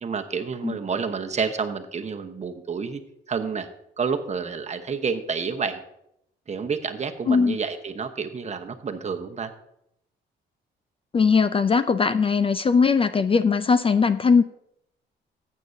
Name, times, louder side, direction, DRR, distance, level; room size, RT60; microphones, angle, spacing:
voice 1, 0.0-3.0 3.3-3.7 4.0-5.8 6.5-9.5, right 5 dB, 35° right, 6 dB, 1.0 m, -29 dB
voice 2, 7.3-7.6 11.1-14.4, left 5 dB, 30° left, 12 dB, 0.4 m, -20 dB
14.0 x 8.4 x 2.7 m, 0.79 s
cardioid pair, 90°, 20 cm